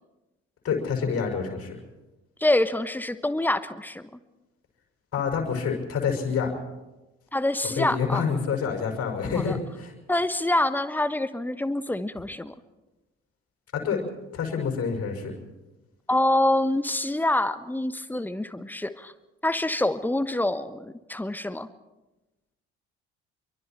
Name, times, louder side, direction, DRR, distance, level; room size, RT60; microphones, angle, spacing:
voice 1, 0.6-1.8 5.1-6.5 7.8-9.9 13.7-14.0 14.3-15.3, left 6 dB, 45° left, 3 dB, 5.7 m, -27 dB
voice 2, 2.4-4.0 7.3-8.2 9.3-9.6 10.1-12.5 16.1-19.1 19.4-21.7, left 1 dB, 5° left, 13 dB, 1.2 m, -26 dB
26.5 x 23.5 x 4.4 m, 1.1 s
figure-of-eight pair, 50°, 34 cm